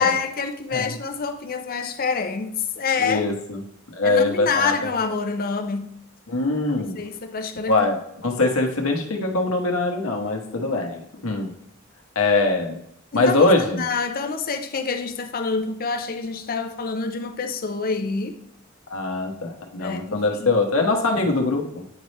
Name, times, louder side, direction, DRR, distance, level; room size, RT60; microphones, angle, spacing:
voice 1, 0.0-3.3 4.0-5.9 7.0-7.8 13.1-13.5 13.7-18.4 19.8-20.5, left 5 dB, 45° left, 0.6 m, -26 dB
voice 2, 3.0-3.6 3.9-4.9 6.3-7.0 7.7-11.5 12.1-12.8 13.1-13.9 18.9-21.7, left 3 dB, 80° left, 1.0 m, -22 dB
9.2 x 4.2 x 3.2 m
head